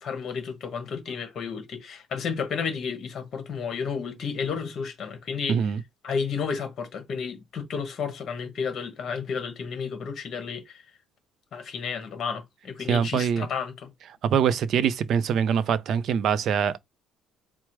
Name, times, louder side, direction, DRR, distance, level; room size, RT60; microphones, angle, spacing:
voice 1, 0.0-5.6 6.0-10.8 11.5-13.9, left 6 dB, 40° left, 1.3 m, -32 dB
voice 2, 5.5-5.8 12.9-13.5 14.2-16.8, right 7 dB, 45° right, 0.4 m, -24 dB
4.7 x 2.0 x 4.5 m
cardioid pair, 170°, 0 cm